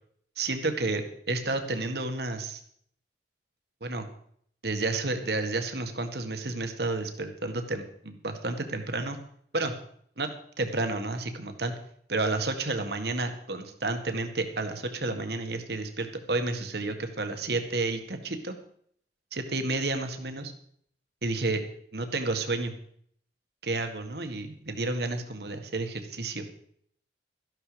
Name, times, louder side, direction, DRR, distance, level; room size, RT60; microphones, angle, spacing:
voice 1, 0.4-2.6 3.8-4.0 4.6-9.2 9.5-9.7 10.2-10.3 10.6-11.7 12.1-18.5 19.3-20.5 21.2-21.6 21.9-22.7 23.6-26.4, right 2 dB, 65° right, 6 dB, 1.8 m, -31 dB
13.5 x 11.5 x 5.1 m, 0.64 s
head